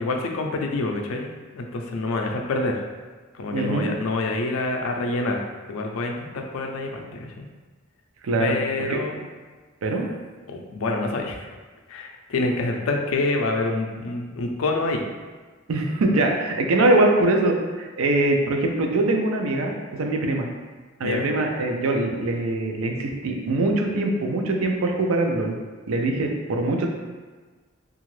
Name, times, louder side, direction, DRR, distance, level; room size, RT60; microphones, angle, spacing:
voice 1, 0.0-2.8 3.3-5.4 5.7-7.5 8.4-9.2 10.5-11.5 11.9-15.0 21.0-21.3, left 2 dB, 80° left, 2 dB, 0.4 m, -27 dB
voice 2, 3.5-3.9 8.2-8.6 8.9-9.0 9.8-10.1 15.7-20.5 21.0-25.5 25.9-26.9, right 2 dB, 85° right, 2 dB, 0.4 m, -22 dB
2.8 x 2.4 x 3.1 m, 1.4 s
head